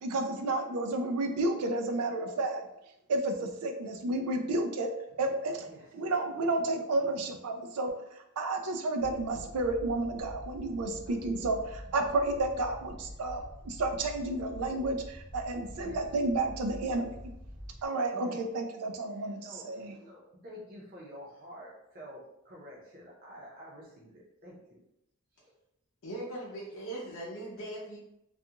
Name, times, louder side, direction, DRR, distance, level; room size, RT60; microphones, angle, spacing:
voice 1, 0.0-2.6 3.1-4.9 5.2-5.7 5.9-7.9 8.4-17.2 17.8-20.0, right 2 dB, 90° right, 5 dB, 0.4 m, -31 dB
sound 1, 9.0-17.8, equal, ahead, 0.6 m, -46 dB
voice 2, 18.1-18.4 19.1-24.6 25.4-25.5, equal, 40° right, -5 dB, 0.6 m, -49 dB
voice 3, 26.0-28.0, right 1 dB, 65° left, -6 dB, 0.6 m, -39 dB
2.4 x 2.3 x 2.8 m, 0.81 s
head